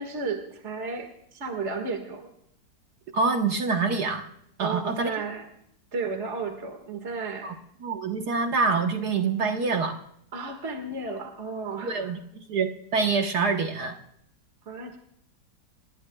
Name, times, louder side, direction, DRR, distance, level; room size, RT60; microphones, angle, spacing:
voice 1, 0.0-2.3 4.6-5.5 5.9-7.6 10.3-12.1 14.7-15.0, right 4 dB, 40° right, 5 dB, 2.1 m, -33 dB
voice 2, 3.1-4.2 4.6-5.2 7.4-7.5 7.8-10.0 11.8-13.9, right 4 dB, 65° right, 3 dB, 1.7 m, -26 dB
27.0 x 20.0 x 2.3 m, 0.75 s
omnidirectional pair, 1.9 m